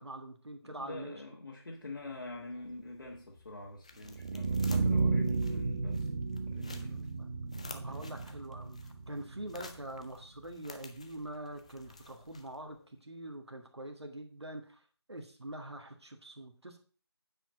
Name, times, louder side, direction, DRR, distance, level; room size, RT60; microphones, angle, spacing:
voice 1, 0.0-1.1 6.7-7.3 7.7-16.8, right 1 dB, 75° right, 4 dB, 1.6 m, -44 dB
voice 2, 0.6-6.1 6.5-6.9 7.8-8.0, left 2 dB, 55° left, -2 dB, 1.7 m, -45 dB
sound 1, 1.8-12.9, left 3 dB, 15° left, 0.4 m, -54 dB
sound 2, 4.0-10.1, right 4 dB, 35° right, 0.6 m, -33 dB
8.9 x 5.0 x 5.1 m, 0.40 s
figure-of-eight pair, 155°, 14 cm